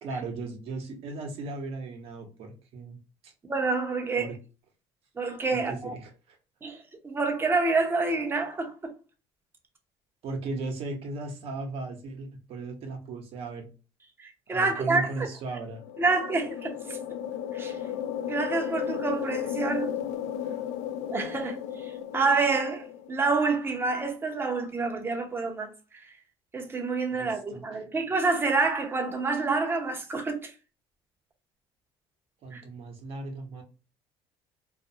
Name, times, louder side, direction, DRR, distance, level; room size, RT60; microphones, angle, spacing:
voice 1, 0.0-3.0 3.2-3.3 4.1-4.4 5.5-6.1 10.2-13.7 14.5-15.8 20.4-20.6 27.1-27.6 32.4-33.6, right 3 dB, 60° right, 0.9 m, -37 dB
voice 2, 3.4-4.3 5.2-5.9 6.6-8.9 14.2-15.3 16.0-17.0 17.5-17.8 18.3-19.9 21.1-26.1 26.5-30.5 32.5-32.6, right 3 dB, 20° right, 0.7 m, -28 dB
sound 1, 15.6-23.3, left 9 dB, 75° left, 0.4 m, -34 dB
2.4 x 2.2 x 2.7 m
cardioid pair, 115°, 11 cm